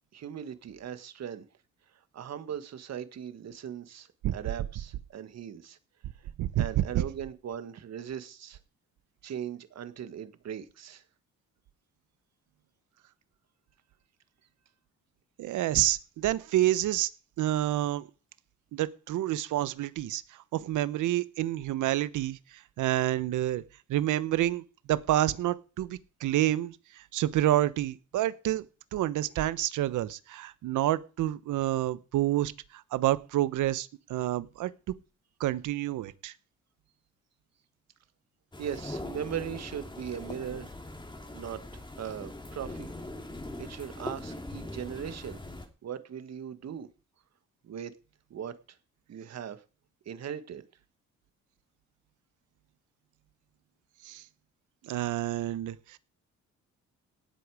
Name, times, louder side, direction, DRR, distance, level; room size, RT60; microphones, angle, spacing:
voice 1, 0.1-1.4 2.1-5.8 6.6-8.6 9.2-11.0 38.6-40.7 41.3-42.9 43.6-45.4 45.8-46.9 47.6-47.9 48.3-48.5 49.1-49.6 50.0-50.6, right 9 dB, 60° right, 11 dB, 1.7 m, -39 dB
voice 2, 6.4-7.0 15.4-17.1 17.4-18.1 18.7-20.2 20.5-22.4 22.8-23.6 23.9-28.7 28.9-34.7 35.4-36.3 54.0-54.2 54.8-56.0, right 14 dB, 80° right, 16 dB, 1.0 m, -28 dB
sound 1, 38.5-45.7, left 1 dB, 15° left, 3.1 m, -41 dB
18.5 x 8.4 x 4.9 m, 0.35 s
cardioid pair, 90°, 30 cm